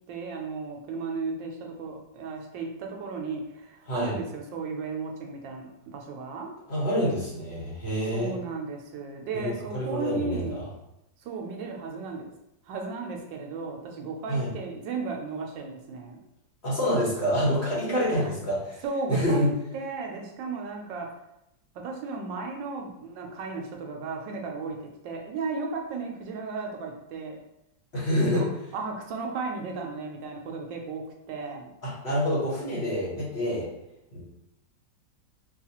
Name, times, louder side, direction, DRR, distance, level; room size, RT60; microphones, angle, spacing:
voice 1, 0.1-6.5 8.1-10.6 11.2-12.3 12.7-16.2 17.8-18.3 18.8-21.1 21.7-27.4 28.3-31.7, right 4 dB, 80° right, 2 dB, 1.3 m, -35 dB
voice 2, 6.7-8.4 9.3-10.7 14.3-14.5 16.6-18.8 19.1-19.5 27.9-28.4 31.8-33.7 34.1-34.2, equal, 40° left, -7 dB, 1.2 m, -27 dB
4.5 x 2.3 x 2.8 m, 0.84 s
omnidirectional pair, 2.0 m